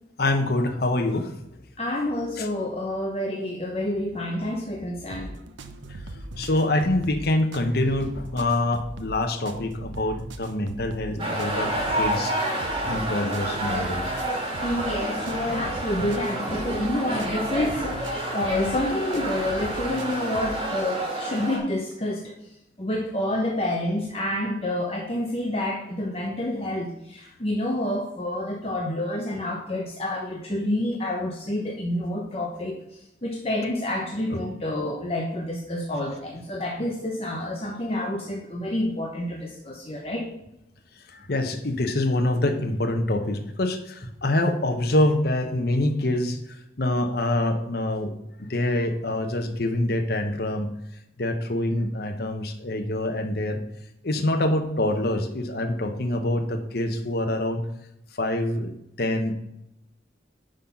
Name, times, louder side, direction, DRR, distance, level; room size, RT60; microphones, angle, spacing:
voice 1, 0.2-1.3 2.4-2.5 5.9-6.0 6.4-12.3 12.6-14.1 34.3-34.4 34.8-34.9 41.1-46.4 46.8-48.1 48.4-50.7 51.2-53.6 54.0-57.6 58.2-58.7 59.0-59.3, left 1 dB, 55° left, 5 dB, 0.9 m, -25 dB
voice 2, 1.8-5.3 11.1-11.3 14.6-22.3 22.8-32.8 33.2-40.3, left 1 dB, 30° left, -1 dB, 1.0 m, -28 dB
sound 1, 5.1-20.6, right 1 dB, 85° right, 0.8 m, -40 dB
sound 2, 11.2-21.6, right 1 dB, 30° right, 2.0 m, -29 dB
10.0 x 4.0 x 5.7 m, 0.83 s
head